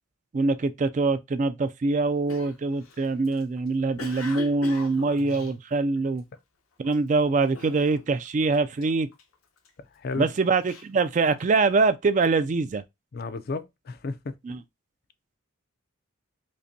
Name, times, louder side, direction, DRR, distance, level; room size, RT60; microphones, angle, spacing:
voice 1, 0.3-6.2 6.8-9.1 10.2-12.8 14.4-14.6, right 3 dB, 35° right, 0.3 m, -24 dB
Cough, 2.3-6.4 6.8-7.2 7.5-8.3 8.5-9.7 10.2-11.7, left 4 dB, 90° left, 1.0 m, -43 dB
voice 2, 10.0-10.3 13.1-14.3, left 3 dB, 45° left, 0.4 m, -33 dB
5.2 x 2.2 x 2.6 m
head